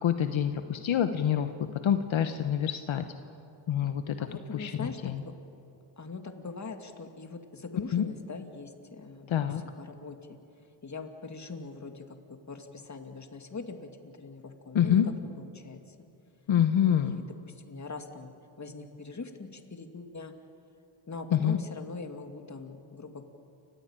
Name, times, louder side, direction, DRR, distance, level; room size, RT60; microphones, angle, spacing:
voice 1, 0.0-3.0 3.7-4.2 4.5-5.2 7.9-8.0 9.3-9.6 14.7-15.1 16.5-17.2 21.3-21.6, left 9 dB, 75° left, 8 dB, 1.1 m, -26 dB
voice 2, 4.2-5.3 6.0-10.4 10.8-15.0 15.4-16.0 16.9-20.3 21.1-23.2, left 4 dB, 35° left, 6 dB, 2.3 m, -42 dB
30.0 x 15.0 x 9.0 m, 2.7 s
cardioid pair, 85°, 47 cm